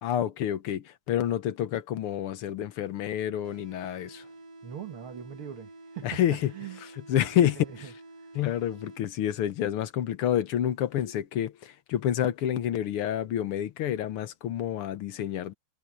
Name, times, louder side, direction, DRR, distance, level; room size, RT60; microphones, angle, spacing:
voice 1, 0.0-4.3 6.0-6.5 6.8-7.6 8.4-15.5, left 11 dB, 80° left, 2.0 m, -28 dB
sound 1, 3.4-9.4, right 2 dB, 15° right, 4.2 m, -49 dB
voice 2, 4.6-6.2 6.5-6.8 7.4-7.8 8.2-8.3, right 9 dB, 75° right, 2.5 m, -41 dB
omnidirectional pair, 2.4 m